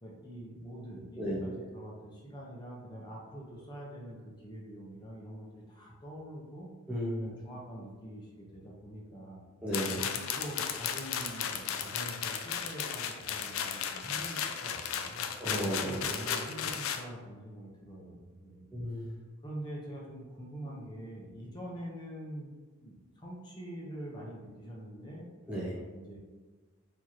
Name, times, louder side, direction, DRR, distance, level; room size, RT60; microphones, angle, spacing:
voice 1, 0.0-6.7 7.2-9.5 9.9-15.2 16.0-19.1 19.4-25.2 25.9-26.2, right 1 dB, 20° left, -3 dB, 0.8 m, -45 dB
voice 2, 1.2-1.7 6.9-7.3 9.6-10.0 15.4-16.5 18.7-19.2 25.5-25.8, equal, 5° right, -7 dB, 0.5 m, -34 dB
sound 1, 9.7-17.0, left 8 dB, 75° left, 0.4 m, -35 dB
4.7 x 2.9 x 2.9 m, 1.4 s
head